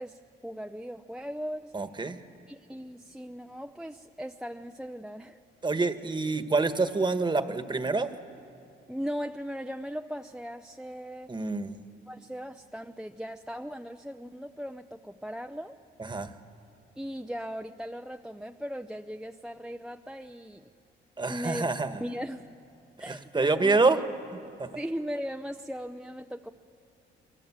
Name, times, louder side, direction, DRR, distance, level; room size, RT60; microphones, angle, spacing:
voice 1, 0.0-1.7 2.5-5.4 8.9-11.3 12.1-15.8 17.0-20.7 21.3-21.6 22.0-22.6 23.0-23.8 24.7-26.5, equal, 5° right, 5 dB, 0.7 m, -38 dB
voice 2, 1.7-2.2 5.6-8.1 11.3-11.8 16.0-16.3 21.2-22.0 23.1-24.0 24.6-24.7, right 3 dB, 25° right, 9 dB, 1.5 m, -27 dB
27.0 x 23.0 x 7.4 m, 2.7 s
cardioid pair, 90°, 20 cm